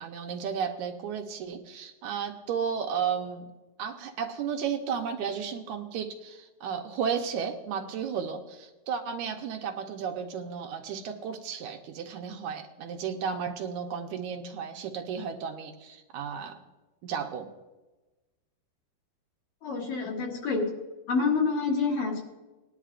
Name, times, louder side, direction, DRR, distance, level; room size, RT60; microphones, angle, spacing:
voice 1, 0.0-3.5 3.8-16.6 17.0-17.5, right 7 dB, 75° right, 4 dB, 1.8 m, -33 dB
voice 2, 19.6-20.8 21.1-22.2, left 4 dB, 65° left, -3 dB, 3.8 m, -27 dB
19.5 x 11.0 x 2.5 m, 1.1 s
omnidirectional pair, 4.3 m